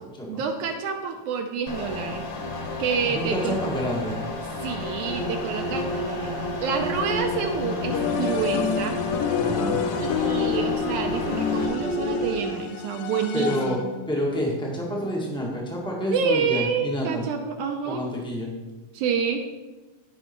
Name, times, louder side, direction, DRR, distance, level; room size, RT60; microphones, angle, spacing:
voice 1, 0.3-2.3 2.8-3.6 4.6-6.3 6.6-9.0 10.0-13.9 16.1-18.1 18.9-19.4, right 6 dB, 75° right, 4 dB, 2.0 m, -28 dB
sound 1, 1.7-11.7, left 3 dB, 55° left, 1.7 m, -33 dB
voice 2, 3.1-4.2 9.4-9.9 13.3-13.8 14.1-17.2 17.8-18.5, equal, 5° left, -3 dB, 0.4 m, -28 dB
sound 2, 5.0-12.5, equal, 30° left, 1.0 m, -31 dB
sound 3, 7.9-14.0, left 8 dB, 90° left, 2.4 m, -29 dB
15.0 x 5.5 x 4.5 m, 1.2 s
omnidirectional pair, 3.9 m